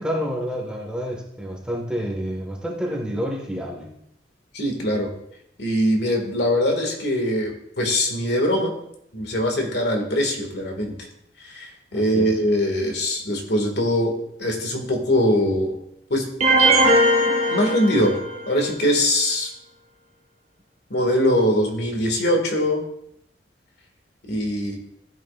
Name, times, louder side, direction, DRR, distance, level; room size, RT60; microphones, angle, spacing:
voice 1, 0.0-3.9 11.9-12.3, equal, 5° right, 0 dB, 1.6 m, -29 dB
voice 2, 4.5-5.1 5.6-8.7 9.1-11.0 11.4-14.1 14.4-15.8 16.1-16.3 16.6-18.2 18.5-19.5 20.9-22.8 24.3-24.8, equal, 65° left, 2 dB, 2.1 m, -22 dB
sound 1, 16.4-18.5, right 1 dB, 40° right, 1.6 m, -19 dB
14.5 x 8.5 x 2.5 m, 0.75 s
head